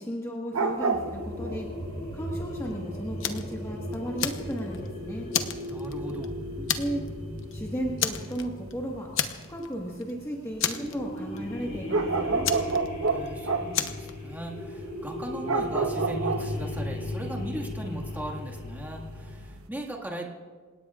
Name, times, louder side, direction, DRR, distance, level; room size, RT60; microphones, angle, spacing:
voice 1, 0.0-1.7 2.1-5.3 6.6-7.0 7.5-9.1 9.5-12.5, equal, 15° left, -3 dB, 1.6 m, -35 dB
sound 1, 0.5-7.6 7.9-19.7, right 4 dB, 75° right, 1.0 m, -32 dB
sound 2, 0.9-10.0 10.7-19.4, left 1 dB, 35° left, 4.3 m, -37 dB
Fire, 3.2-3.5 3.9-4.9 5.3-6.3 6.7-7.1 7.4-7.5 8.0-8.7 9.2-9.7 10.0-10.1 10.6-11.4 12.4-13.3 13.7-14.1, left 9 dB, 65° left, 1.0 m, -30 dB
voice 2, 5.7-6.3 13.0-20.3, right 1 dB, 10° right, -1 dB, 1.9 m, -38 dB
28.5 x 17.5 x 2.5 m, 1.5 s
head